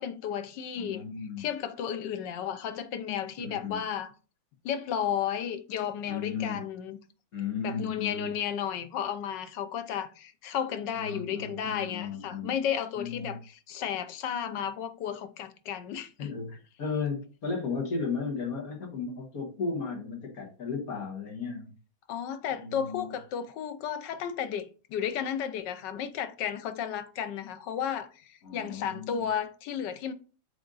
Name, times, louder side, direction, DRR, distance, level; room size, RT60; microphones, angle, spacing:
voice 1, 0.0-1.0 1.4-4.1 4.6-7.0 7.6-16.3 22.1-30.1, left 8 dB, 70° left, 1.2 m, -33 dB
voice 2, 0.8-1.5 3.4-3.8 6.0-6.6 7.3-8.3 10.9-12.5 13.0-13.4 16.2-21.7 22.5-23.1 28.4-29.3, left 5 dB, 50° left, 1.8 m, -35 dB
7.5 x 3.5 x 3.9 m
omnidirectional pair, 2.2 m